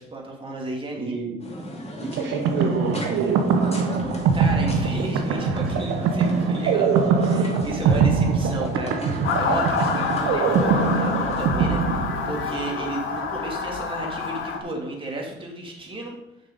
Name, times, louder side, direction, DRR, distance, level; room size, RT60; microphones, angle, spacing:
voice 1, 0.0-1.2 4.3-16.2, right 2 dB, 25° right, -1 dB, 2.6 m, -34 dB
voice 2, 1.0-1.4 2.0-3.5 7.8-8.1, right 4 dB, 65° right, 0 dB, 1.6 m, -29 dB
sound 1, 1.4-11.5, equal, 30° left, 2.5 m, -35 dB
sound 2, 2.2-12.7, right 5 dB, 90° right, 0.9 m, -23 dB
Motor vehicle (road) / Siren, 9.2-14.6, left 5 dB, 85° left, 1.4 m, -27 dB
7.4 x 6.6 x 5.2 m, 0.86 s
cardioid pair, 90°, 20 cm